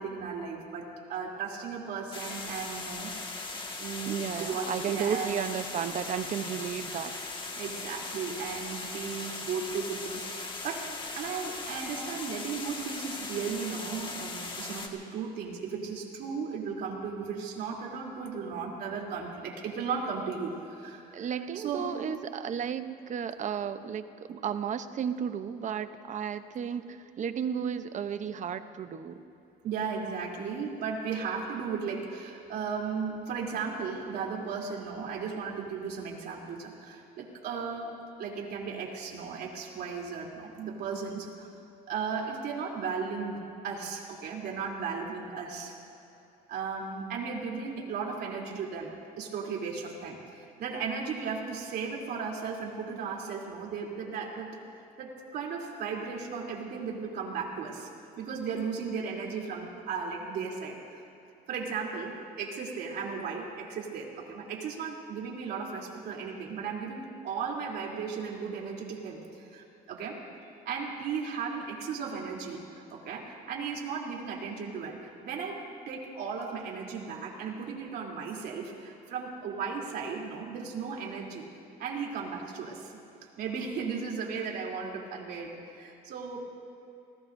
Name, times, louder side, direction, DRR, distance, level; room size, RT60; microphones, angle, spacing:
voice 1, 0.0-5.4 7.5-10.9 11.1-21.3 21.5-22.1 29.6-37.9 38.2-41.5 41.9-45.7 46.5-54.6 55.0-57.9 58.2-61.0 61.5-70.2 70.7-75.6 75.9-81.5 81.8-82.9 83.2-86.4, right 5 dB, 70° right, -1 dB, 3.3 m, -36 dB
sound 1, 2.1-14.9, left 3 dB, 30° left, 1.8 m, -39 dB
voice 2, 4.1-7.1 21.1-29.2, right 8 dB, 45° right, 10 dB, 0.8 m, -33 dB
28.5 x 19.0 x 2.7 m, 2.8 s
cardioid pair, 110°, 17 cm